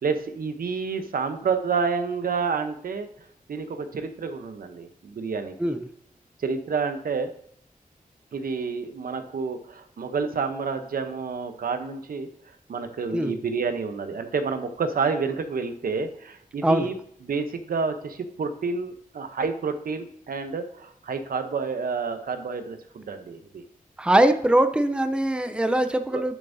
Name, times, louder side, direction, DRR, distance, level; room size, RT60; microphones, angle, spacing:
voice 1, 0.0-3.1 3.5-5.7 6.4-7.3 8.3-17.0 17.2-23.6 26.1-26.2, right 5 dB, 85° right, 8 dB, 0.8 m, -29 dB
voice 2, 24.0-26.4, right 1 dB, 5° right, 8 dB, 0.6 m, -22 dB
10.5 x 7.0 x 2.7 m, 0.65 s
wide cardioid pair, 110°, 15 cm